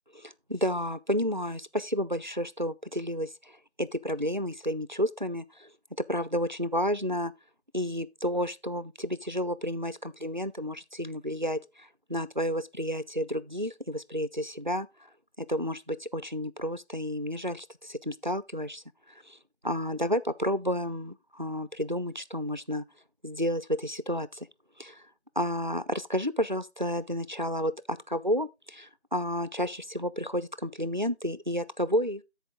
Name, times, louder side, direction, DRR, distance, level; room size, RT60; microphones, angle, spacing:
voice 1, 0.1-5.7 6.0-7.3 7.7-14.9 15.4-18.8 19.3-19.4 19.6-22.8 23.2-24.5 24.8-25.0 25.4-32.2, equal, 45° right, 0.4 m, -31 dB
12.5 x 4.5 x 3.6 m
figure-of-eight pair, 175°, 34 cm